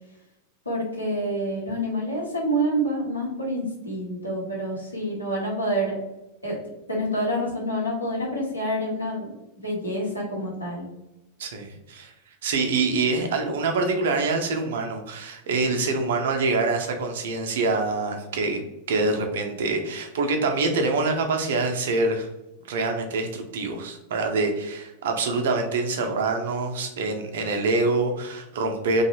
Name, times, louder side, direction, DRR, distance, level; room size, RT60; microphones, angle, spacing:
voice 1, 0.6-6.0 6.4-6.6 6.9-9.3 9.6-10.9, equal, 85° left, -3 dB, 0.9 m, -27 dB
voice 2, 11.4-12.1 12.4-18.6 18.9-22.3 22.7-29.0, right 3 dB, 60° right, 4 dB, 0.5 m, -25 dB
2.6 x 2.3 x 2.8 m, 0.94 s
figure-of-eight pair, 90°, 0 cm